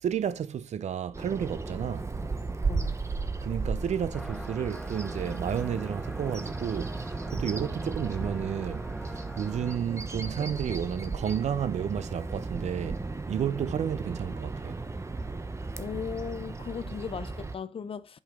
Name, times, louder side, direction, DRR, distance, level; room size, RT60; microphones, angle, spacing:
voice 1, 0.0-2.1 3.4-13.0 13.3-14.8, right 8 dB, 70° right, 0.8 m, -31 dB
Bird vocalization bird call bird song, 1.1-17.6, right 3 dB, 25° right, 1.0 m, -35 dB
sound 1, 4.1-9.8, equal, ahead, 0.9 m, -45 dB
voice 2, 15.8-18.2, left 7 dB, 50° left, 0.7 m, -37 dB
10.5 x 5.6 x 3.8 m
cardioid pair, 85°, 12 cm